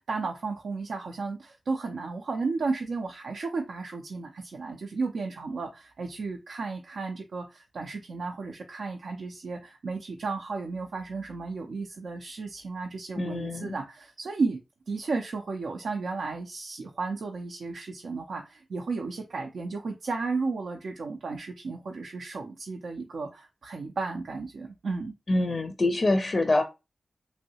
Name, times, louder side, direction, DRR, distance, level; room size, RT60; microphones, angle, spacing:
voice 1, 0.0-14.6 14.9-25.2, right 4 dB, 85° right, 2 dB, 0.4 m, -33 dB
voice 2, 13.2-13.7 25.3-26.6, left 2 dB, 50° left, 7 dB, 0.4 m, -25 dB
3.1 x 2.7 x 2.8 m, 0.26 s
cardioid pair, 60°, 0 cm